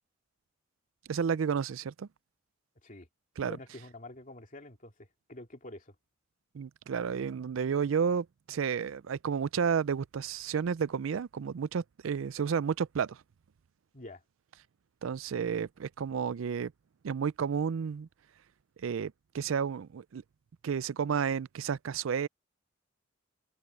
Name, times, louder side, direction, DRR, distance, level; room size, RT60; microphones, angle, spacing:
voice 1, 1.1-2.1 3.4-3.6 6.5-13.2 15.0-16.7 17.0-18.1 18.8-20.2 20.6-22.3, right 6 dB, 75° right, 0.4 m, -31 dB
voice 2, 3.4-6.0 13.9-14.2, left 1 dB, 40° left, 2.7 m, -47 dB
head